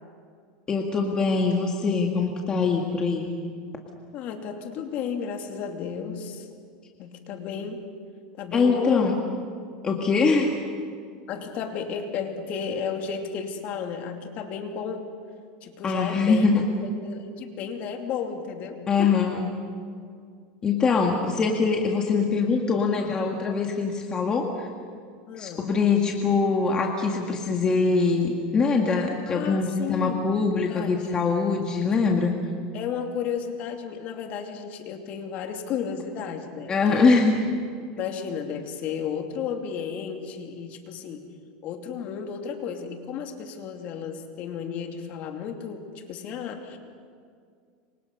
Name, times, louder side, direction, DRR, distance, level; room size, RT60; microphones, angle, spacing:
voice 1, 0.7-3.3 8.5-9.2 9.8-10.5 15.8-16.7 18.9-19.5 20.6-24.7 25.4-32.3 36.7-37.5, left 4 dB, 20° left, 1 dB, 1.9 m, -23 dB
voice 2, 4.1-6.5 7.0-7.8 8.4-9.1 11.3-15.1 15.6-16.5 16.8-19.1 25.3-25.6 29.3-30.2 30.7-31.0 32.2-32.3 32.7-37.1 37.9-41.2 41.6-46.8, left 7 dB, 45° left, 4 dB, 2.7 m, -33 dB
28.0 x 25.0 x 5.5 m, 2.1 s
supercardioid pair, 145°, 4 cm